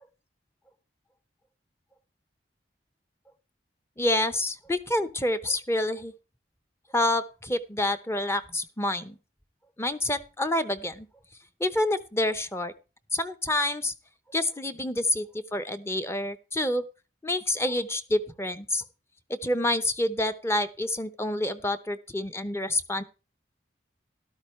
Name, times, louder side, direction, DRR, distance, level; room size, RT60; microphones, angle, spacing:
voice 1, 4.0-6.1 6.9-9.2 9.8-11.1 11.6-12.7 13.1-13.9 14.3-16.8 17.2-18.8 19.3-23.0, left 1 dB, 15° left, 12 dB, 0.7 m, -28 dB
13.0 x 12.5 x 3.2 m, 0.32 s
head